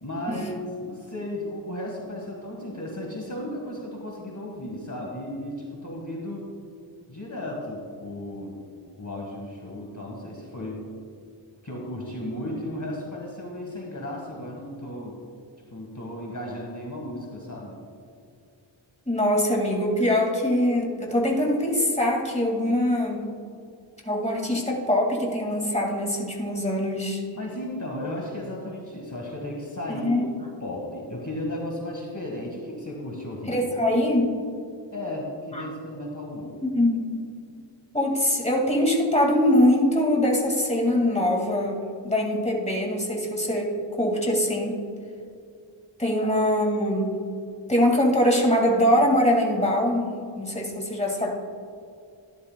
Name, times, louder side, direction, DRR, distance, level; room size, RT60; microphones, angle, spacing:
voice 1, 0.0-6.5 7.1-8.6 9.0-10.8 11.6-15.2 15.7-17.8 27.3-30.3 30.6-33.6 34.9-36.6 46.2-46.3, left 1 dB, 40° left, -1 dB, 1.6 m, -34 dB
voice 2, 19.1-23.2 24.0-27.2 29.9-30.2 33.5-34.4 35.5-35.7 36.6-37.1 37.9-44.8 46.0-47.2 47.7-50.1 50.3-51.3, left 1 dB, 15° left, 0 dB, 2.0 m, -23 dB
14.0 x 11.0 x 2.2 m, 2.5 s
wide cardioid pair, 40°, 47 cm